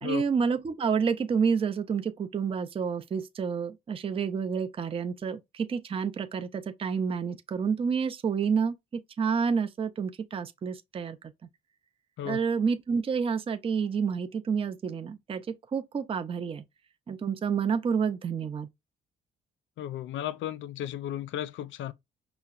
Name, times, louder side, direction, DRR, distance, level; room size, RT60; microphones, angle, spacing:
voice 1, 0.0-8.8 9.2-11.2 12.2-16.6 17.1-18.7, right 6 dB, 30° right, 0.4 m, -29 dB
voice 2, 19.8-21.9, left 11 dB, 75° left, 0.4 m, -34 dB
5.4 x 2.0 x 2.4 m
cardioid pair, 90°, 20 cm